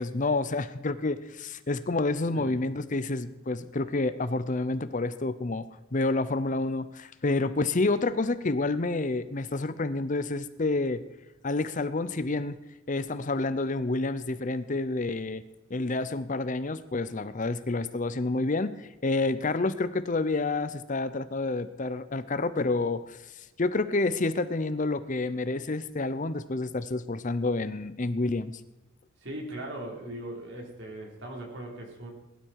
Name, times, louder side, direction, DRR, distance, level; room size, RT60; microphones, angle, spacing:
voice 1, 0.0-5.6 5.9-11.0 11.4-12.6 12.9-15.4 15.7-28.6, left 2 dB, 35° left, 14 dB, 0.6 m, -29 dB
voice 2, 29.2-32.1, right 1 dB, 55° right, -1 dB, 4.6 m, -39 dB
20.5 x 12.0 x 4.7 m, 1.0 s
head